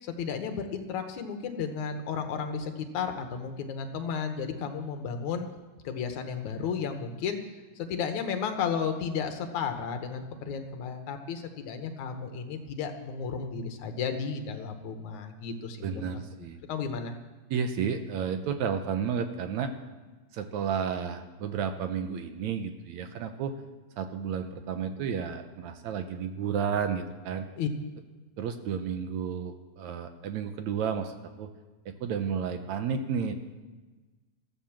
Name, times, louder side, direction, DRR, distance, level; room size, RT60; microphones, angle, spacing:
voice 1, 0.0-5.5 5.8-7.4 7.8-16.0 16.7-17.1 27.6-27.7, left 6 dB, 70° left, 6 dB, 2.5 m, -33 dB
voice 2, 15.8-16.6 17.5-19.7 20.3-23.5 24.0-27.5 28.4-31.5 31.9-33.3, right 7 dB, 70° right, 8 dB, 2.1 m, -32 dB
14.5 x 12.0 x 7.3 m, 1.2 s
omnidirectional pair, 3.6 m